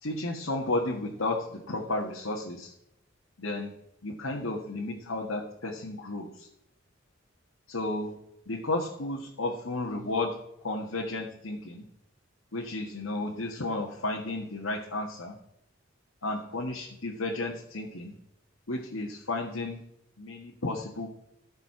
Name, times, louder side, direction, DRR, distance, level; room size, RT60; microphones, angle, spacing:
voice 1, 0.0-2.7 3.4-3.7 4.0-6.5 7.7-8.1 8.5-10.4 10.6-11.9 12.5-15.4 16.2-18.1 18.7-19.9 20.2-21.1, left 2 dB, 90° left, -2 dB, 1.8 m, -33 dB
14.0 x 6.8 x 6.0 m, 0.80 s
head